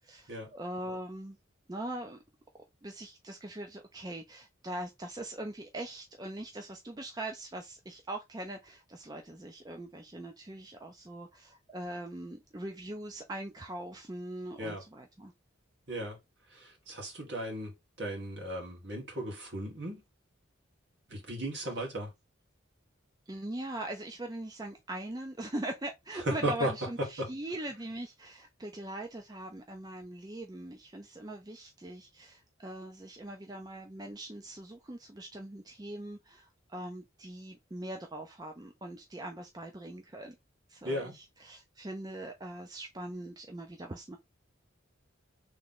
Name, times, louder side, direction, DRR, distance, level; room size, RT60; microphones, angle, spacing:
voice 1, 0.0-1.4 1.7-2.2 2.8-15.3 23.3-40.4 40.7-44.2, right 1 dB, 20° right, 0.4 m, -41 dB
voice 2, 15.9-16.2 16.5-20.0 21.1-22.1 26.3-26.7 27.0-27.3 40.8-41.1, right 1 dB, 55° right, 1.8 m, -35 dB
3.4 x 3.1 x 3.8 m
head